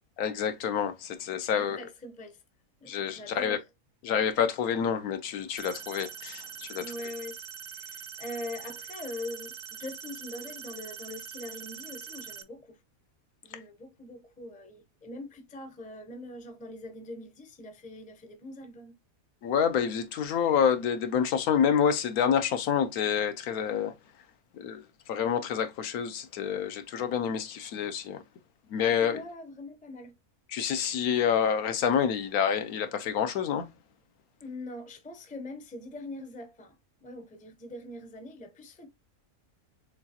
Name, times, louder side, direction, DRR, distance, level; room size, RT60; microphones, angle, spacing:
voice 1, 0.2-1.8 2.9-3.6 4.0-6.9 19.4-23.9 24.5-24.8 25.1-28.2 28.7-29.2 30.5-33.7, left 8 dB, 80° left, 1.2 m, -28 dB
voice 2, 1.5-2.4 2.8-3.7 6.8-12.8 13.4-18.9 29.0-30.1 34.4-36.8 37.0-38.9, left 1 dB, 10° left, 0.4 m, -42 dB
sound 1, 5.6-12.4, right 7 dB, 60° right, 0.6 m, -43 dB
6.7 x 2.4 x 2.8 m
omnidirectional pair, 1.5 m